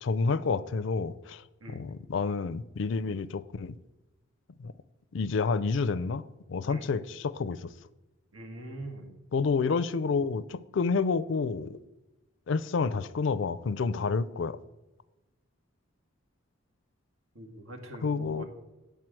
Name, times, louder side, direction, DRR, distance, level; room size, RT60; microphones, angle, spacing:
voice 1, 0.0-1.4 1.7-3.8 4.6-4.7 5.1-6.2 6.5-7.7 9.3-11.8 12.5-14.6 18.0-18.4, left 4 dB, 60° left, 0.4 m, -29 dB
voice 2, 8.3-9.1 17.3-18.5, right 1 dB, 90° right, 1.7 m, -43 dB
9.2 x 4.6 x 7.5 m
head